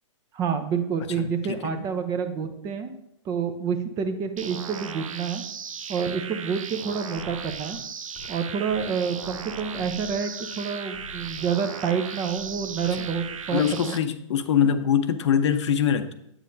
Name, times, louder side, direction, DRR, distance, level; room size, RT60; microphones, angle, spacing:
voice 1, 0.3-2.9 3.2-5.4 5.9-7.8 8.3-14.0, right 6 dB, 20° right, 8 dB, 0.6 m, -28 dB
voice 2, 1.2-1.9 13.0-13.1 13.5-16.1, left 8 dB, 60° left, 10 dB, 0.7 m, -24 dB
sound 1, 4.4-14.0, right 7 dB, 85° right, 0.6 m, -37 dB
sound 2, 7.2-8.4 8.6-9.0 9.2-14.0, left 3 dB, 20° left, 0.9 m, -47 dB
8.2 x 7.3 x 2.7 m, 0.76 s
hypercardioid pair, 135°, 17 cm